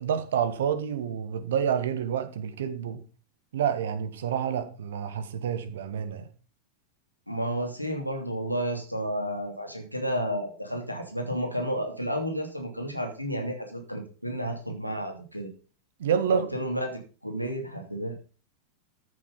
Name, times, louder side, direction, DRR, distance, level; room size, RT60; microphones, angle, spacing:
voice 1, 0.0-3.0 3.5-6.3 16.0-16.4, right 8 dB, 60° right, 1.6 m, -28 dB
voice 2, 7.3-15.5 16.3-18.2, equal, 90° left, 2.8 m, -31 dB
13.5 x 6.8 x 5.4 m
figure-of-eight pair, 90°, 0 cm